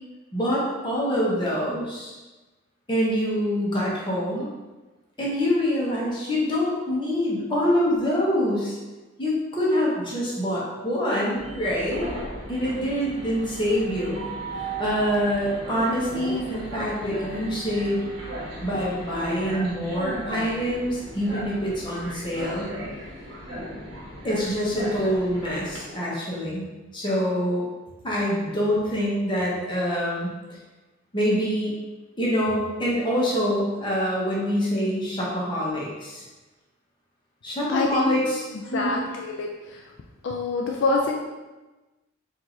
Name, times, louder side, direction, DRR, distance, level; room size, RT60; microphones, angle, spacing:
voice 1, 0.3-2.2 2.9-4.5 5.2-8.8 9.2-12.0 12.5-14.3 14.5-18.0 18.6-22.7 24.2-26.7 26.9-27.6 28.0-30.3 31.1-31.8 32.2-36.2 37.4-38.5 38.7-39.0, equal, 25° left, -6 dB, 1.1 m, -25 dB
Train, 11.4-25.8, right 1 dB, 55° right, 1.4 m, -36 dB
voice 2, 37.7-38.2 38.7-39.5 40.2-41.2, left 3 dB, 65° left, 0 dB, 0.4 m, -25 dB
4.6 x 2.8 x 3.8 m, 1.2 s
head